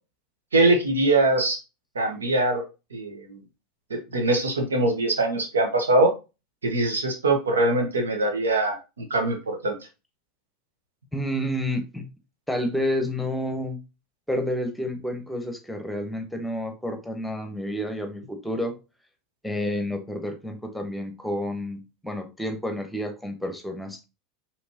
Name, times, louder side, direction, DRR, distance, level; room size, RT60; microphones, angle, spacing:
voice 1, 0.5-1.6 1.9-2.6 2.9-3.4 3.9-6.1 6.6-9.8, right 2 dB, 85° right, 4 dB, 1.2 m, -22 dB
voice 2, 11.1-12.1 12.5-13.8 14.3-18.8 19.4-24.0, left 1 dB, 5° left, 6 dB, 1.2 m, -30 dB
5.2 x 3.5 x 2.9 m, 0.28 s
hypercardioid pair, 80°, 0 cm